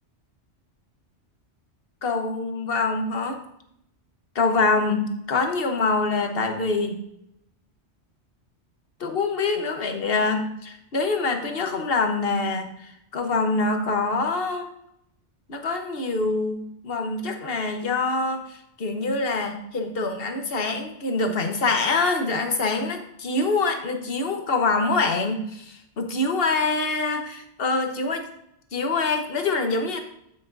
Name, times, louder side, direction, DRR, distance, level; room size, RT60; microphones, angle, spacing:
voice 1, 2.0-3.4 4.3-7.0 9.0-14.7 15.5-28.3 28.7-30.0, left 3 dB, 55° left, 5 dB, 1.3 m, -25 dB
8.5 x 8.4 x 2.6 m, 0.77 s
omnidirectional pair, 1.2 m